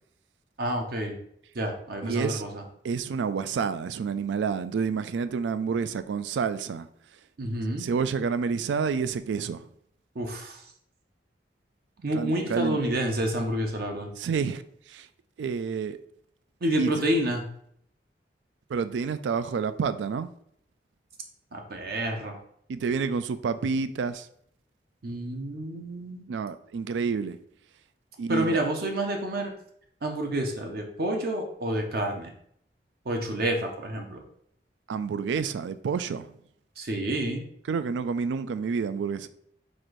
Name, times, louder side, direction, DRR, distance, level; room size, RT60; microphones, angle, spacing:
voice 1, 0.6-1.1 1.5-2.6 7.4-7.9 10.2-10.6 12.0-14.1 16.6-17.4 21.5-22.4 25.0-26.2 28.3-29.5 30.0-32.3 33.1-34.2 36.8-37.4, right 1 dB, 60° right, 0.7 m, -29 dB
voice 2, 2.0-2.4 2.8-6.9 7.8-9.7 12.1-12.8 14.2-14.6 14.9-15.1 15.4-16.0 16.8-16.9 18.7-20.3 22.7-24.3 26.3-27.4 28.2-28.6 34.9-36.3 37.7-39.3, right 5 dB, 90° right, 0.3 m, -29 dB
4.2 x 2.6 x 4.5 m
head